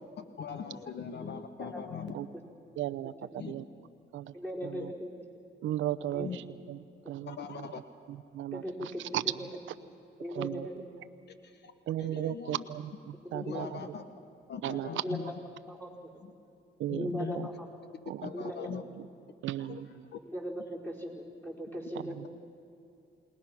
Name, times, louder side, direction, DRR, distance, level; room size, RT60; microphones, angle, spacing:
voice 1, 0.2-2.1 3.4-3.5 6.2-6.4 7.3-7.8 11.5-11.7 12.0-12.6 13.4-14.0 14.5-15.3 16.2-16.3 16.9-17.5 18.2-18.8 19.7-19.8 20.1-20.2, left 7 dB, 60° left, 9 dB, 1.1 m, -40 dB
voice 2, 1.6-2.0 4.3-5.1 6.1-6.4 8.5-9.0 10.2-10.8 13.2-13.6 15.0-15.2 15.7-15.9 16.9-17.6 18.3-18.7 20.2-22.3, equal, 10° left, -2 dB, 4.8 m, -38 dB
voice 3, 2.8-3.7 4.1-4.3 4.6-4.9 5.6-7.8 8.1-9.5 10.3-10.7 11.9-13.8 14.6-15.0 16.8-17.5 18.1-18.3 19.0-19.1 19.4-20.1 21.9-22.4, right 12 dB, 75° right, 14 dB, 0.7 m, -36 dB
28.0 x 19.5 x 6.0 m, 2.7 s
cardioid pair, 90°, 20 cm